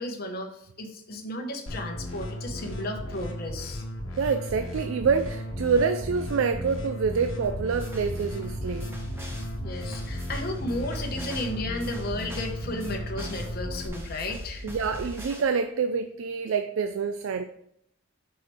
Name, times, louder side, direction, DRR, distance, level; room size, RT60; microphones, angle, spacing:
voice 1, 0.0-3.8 9.6-14.8, left 1 dB, 45° left, 2 dB, 1.0 m, -34 dB
sound 1, 1.7-13.9, equal, 75° left, 1.1 m, -35 dB
voice 2, 4.2-8.9 14.6-17.5, right 5 dB, 75° right, 9 dB, 0.4 m, -27 dB
sound 2, 7.4-15.4, equal, 10° right, 1.0 m, -39 dB
5.6 x 5.1 x 4.4 m, 0.76 s
head